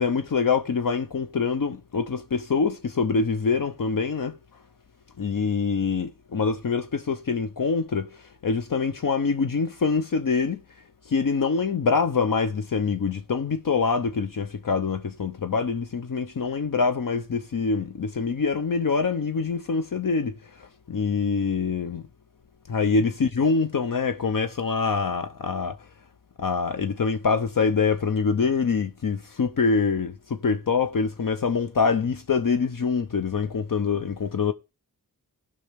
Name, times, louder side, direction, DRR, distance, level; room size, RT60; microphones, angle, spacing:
voice 1, 0.0-4.4 5.2-8.1 8.4-10.6 11.1-20.3 20.6-22.1 22.7-25.8 26.4-34.5, left 5 dB, 60° left, 0.7 m, -25 dB
16.5 x 5.6 x 3.4 m
wide cardioid pair, 95°, 37 cm